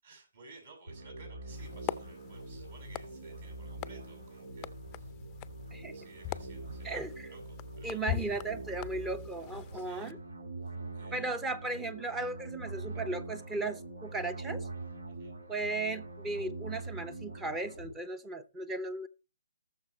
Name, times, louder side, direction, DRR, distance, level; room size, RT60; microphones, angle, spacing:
voice 1, 0.0-5.2 5.9-8.3 9.7-10.1 10.6-11.3 15.2-15.3, right 3 dB, 55° right, 7.3 m, -56 dB
sound 1, 0.9-17.9, right 2 dB, 75° right, 2.1 m, -44 dB
sound 2, 1.5-10.1, left 14 dB, 25° left, 0.5 m, -43 dB
voice 2, 7.8-10.2 11.1-14.7 15.5-19.1, right 2 dB, 10° right, 0.7 m, -36 dB
19.0 x 6.9 x 3.1 m
hypercardioid pair, 145°, 0 cm